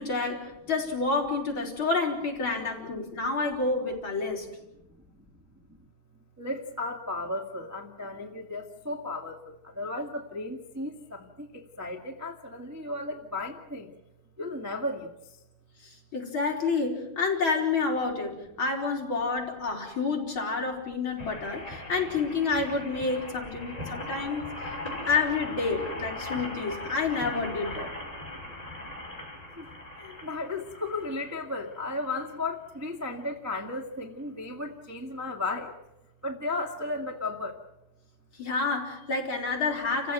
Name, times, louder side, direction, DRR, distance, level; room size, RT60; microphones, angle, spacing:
voice 1, 0.0-4.5 15.8-24.5 25.1-27.9 38.4-40.1, left 4 dB, 35° left, 0 dB, 5.2 m, -29 dB
voice 2, 6.4-13.9 14.4-15.4 24.9-25.0 28.4-29.1 29.6-35.7 36.2-37.6, left 2 dB, 10° right, -1 dB, 1.2 m, -35 dB
sound 1, 21.2-32.3 32.9-33.0 33.2-33.3, left 1 dB, 10° left, 6.7 m, -39 dB
29.5 x 16.5 x 9.2 m, 0.91 s
omnidirectional pair, 3.8 m